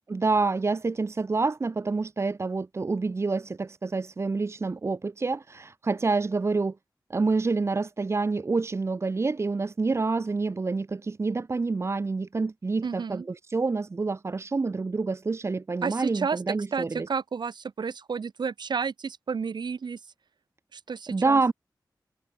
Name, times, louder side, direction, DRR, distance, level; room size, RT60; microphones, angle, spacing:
voice 1, 0.1-6.8 7.1-17.1 21.1-21.5, right 3 dB, 35° right, 0.4 m, -27 dB
voice 2, 12.8-13.3 15.8-16.4 16.7-20.0 20.7-21.4, right 5 dB, 70° right, 0.7 m, -31 dB
cardioid pair, 40°, 8 cm